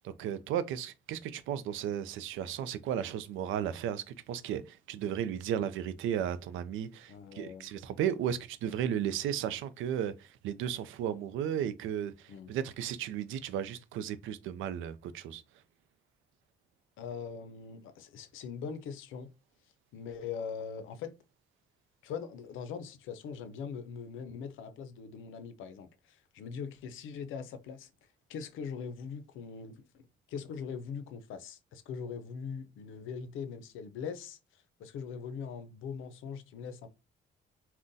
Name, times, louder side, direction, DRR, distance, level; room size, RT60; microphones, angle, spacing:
voice 1, 0.0-15.4, right 9 dB, 85° right, 0.4 m, -34 dB
voice 2, 7.1-7.9 12.3-12.5 17.0-19.3 19.9-21.2 22.0-27.9 28.3-36.9, left 6 dB, 80° left, 0.5 m, -41 dB
2.5 x 2.2 x 3.7 m
cardioid pair, 90°, 20 cm